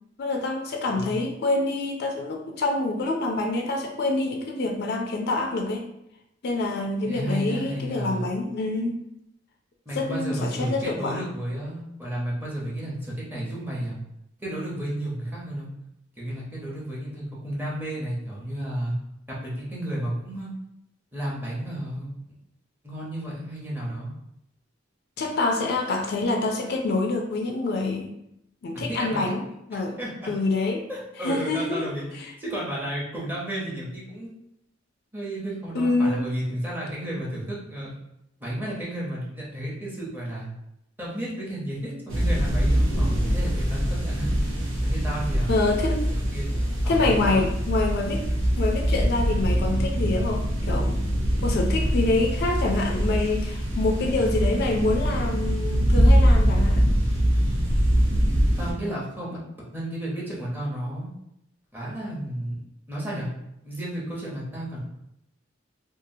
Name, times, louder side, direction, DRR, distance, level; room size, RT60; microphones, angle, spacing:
voice 1, 0.2-5.8 6.4-9.0 10.0-11.3 25.2-28.1 28.6-29.4 29.7-30.0 30.3-30.8 31.2-31.9 32.2-32.3 35.7-36.2 45.5-46.1 46.9-48.3 48.6-51.0 51.4-56.9, left 2 dB, 55° left, 2 dB, 0.4 m, -26 dB
voice 2, 7.0-8.3 9.9-14.0 14.4-15.7 16.2-18.9 19.3-20.5 21.1-22.1 22.8-24.1 28.7-29.3 30.0-30.3 30.9-34.3 35.1-37.9 38.4-40.4 41.0-44.3 44.8-45.6 46.1-46.5 46.8-47.4 58.6-61.1 61.7-62.6 62.9-63.3 63.6-64.8, right 1 dB, 10° right, -6 dB, 0.8 m, -32 dB
sound 1, 42.1-58.7, equal, 85° right, 0.7 m, -23 dB
2.7 x 2.4 x 2.6 m, 0.81 s
head